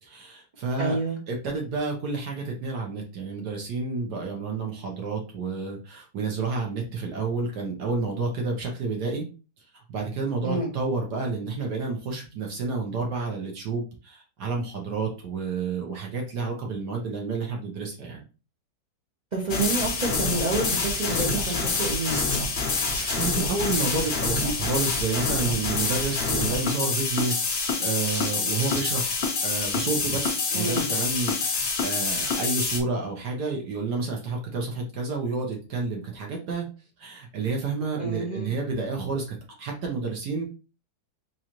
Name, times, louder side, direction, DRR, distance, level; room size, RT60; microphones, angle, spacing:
voice 1, 0.0-1.0 1.3-9.3 9.7-18.2 23.2-36.7 37.0-40.4, right 4 dB, 65° right, 0 dB, 1.4 m, -30 dB
voice 2, 0.8-1.2 10.4-10.7 19.3-22.3 30.5-30.9 38.0-38.5, right 3 dB, 50° right, -2 dB, 0.5 m, -28 dB
sound 1, 19.5-32.8, left 4 dB, 75° left, 0.5 m, -27 dB
Domestic sounds home sounds, 19.9-22.4 22.7-24.2 24.5-24.6 25.1-26.2 26.7-26.8 27.2-27.7 28.0-29.3 29.6-32.3, equal, 10° right, 1.0 m, -38 dB
3.8 x 3.1 x 3.0 m, 0.34 s
omnidirectional pair, 2.1 m